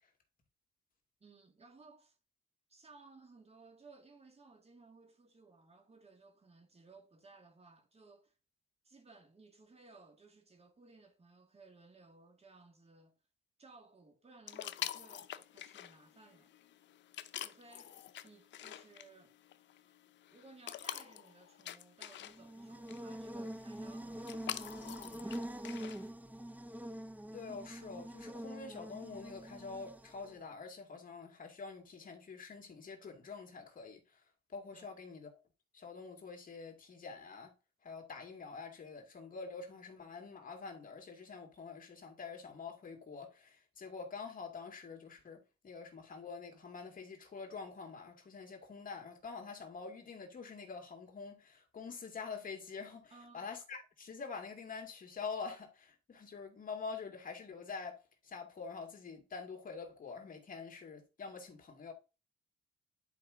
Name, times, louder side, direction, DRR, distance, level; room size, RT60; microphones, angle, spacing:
voice 1, 1.2-2.2 2.7-8.3 8.8-13.1 13.6-16.5 17.4-19.4 19.7-19.8 20.3-24.4 24.7-25.7 34.7-35.0 53.1-53.5, right 3 dB, 30° right, 2.1 m, -60 dB
sound 1, 14.5-26.1, left 11 dB, 65° left, 0.7 m, -47 dB
Buzz, 22.3-30.4, right 1 dB, 10° right, 0.7 m, -45 dB
voice 2, 27.3-34.2 34.5-35.3 35.7-37.5 37.8-61.9, left 5 dB, 45° left, 2.1 m, -46 dB
10.5 x 4.7 x 3.8 m
cardioid pair, 90°, 20 cm